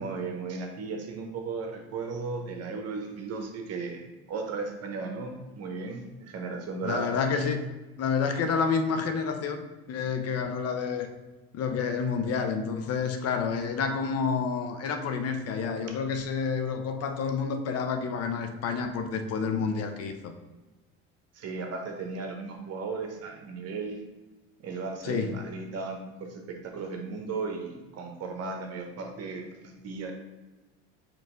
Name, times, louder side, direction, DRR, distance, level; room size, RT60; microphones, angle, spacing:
voice 1, 0.0-7.1 21.3-24.0 24.6-30.1, right 4 dB, 50° right, 3 dB, 1.0 m, -36 dB
voice 2, 6.8-7.7 8.0-11.1 11.5-20.3 25.0-25.4, left 5 dB, 50° left, 6 dB, 0.6 m, -29 dB
4.3 x 3.1 x 3.7 m, 1.1 s
supercardioid pair, 90°, 32 cm